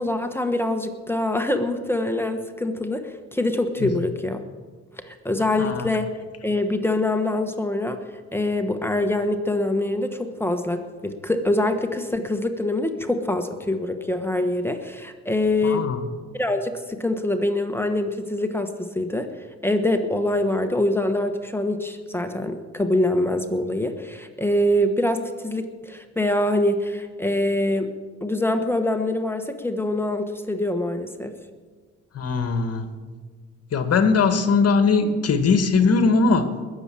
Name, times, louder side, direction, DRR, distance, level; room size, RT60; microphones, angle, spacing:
voice 1, 0.0-4.4 4.9-6.1 6.4-8.0 8.3-15.9 16.3-27.9 28.2-31.3, left 1 dB, 5° left, 6 dB, 1.2 m, -24 dB
voice 2, 5.6-5.9 15.6-16.0 32.1-32.9 33.7-36.5, left 4 dB, 55° left, 8 dB, 1.6 m, -20 dB
20.5 x 7.1 x 7.6 m, 1.5 s
cardioid pair, 90°, 30 cm